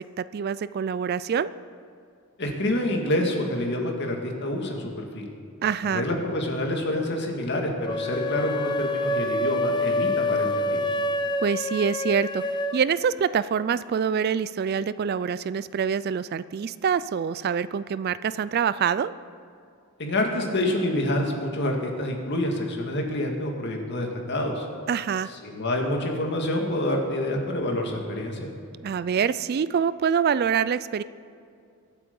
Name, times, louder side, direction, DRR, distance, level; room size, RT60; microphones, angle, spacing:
voice 1, 0.2-1.5 5.6-6.0 11.4-12.4 12.7-19.1 24.9-25.3 28.8-31.0, right 7 dB, 50° right, 16 dB, 0.3 m, -25 dB
voice 2, 2.4-5.2 5.9-10.9 20.0-24.7 25.4-28.5, left 1 dB, 55° left, 1 dB, 2.1 m, -27 dB
sound 1, 7.8-12.8, left 1 dB, 20° left, 0.6 m, -27 dB
23.0 x 8.4 x 5.4 m, 2.3 s
head